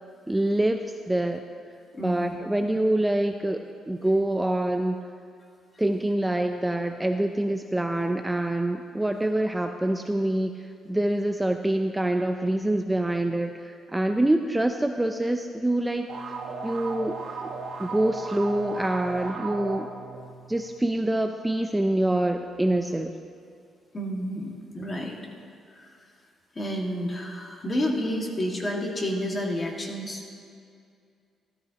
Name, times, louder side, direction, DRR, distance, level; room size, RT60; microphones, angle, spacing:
voice 1, 0.3-0.8 1.1-1.4 2.0-5.0 5.8-10.5 10.9-16.1 16.6-17.5 17.8-19.9 20.5-23.1, right 1 dB, 10° right, 5 dB, 0.5 m, -25 dB
voice 2, 1.9-2.4 23.9-25.2 25.7-25.9 26.6-30.4, equal, 30° left, 0 dB, 1.9 m, -30 dB
sound 1, 16.1-20.7, right 4 dB, 60° right, 1.0 m, -36 dB
13.5 x 13.0 x 2.9 m, 2.3 s
cardioid pair, 90°, 0 cm